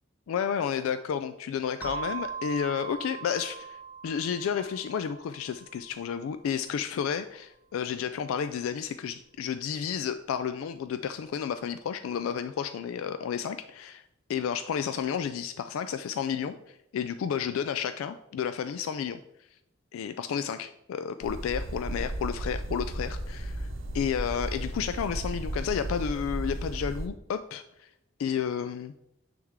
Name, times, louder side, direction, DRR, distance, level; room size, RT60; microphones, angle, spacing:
voice 1, 0.3-3.8 4.0-14.0 14.3-19.2 19.9-23.7 23.9-27.9 28.2-28.9, left 7 dB, 90° left, 11 dB, 0.3 m, -31 dB
sound 1, 1.8-6.2, right 5 dB, 10° right, 0.9 m, -40 dB
sound 2, 21.2-27.1, right 1 dB, 80° right, 0.8 m, -34 dB
9.3 x 3.5 x 3.6 m, 0.81 s
head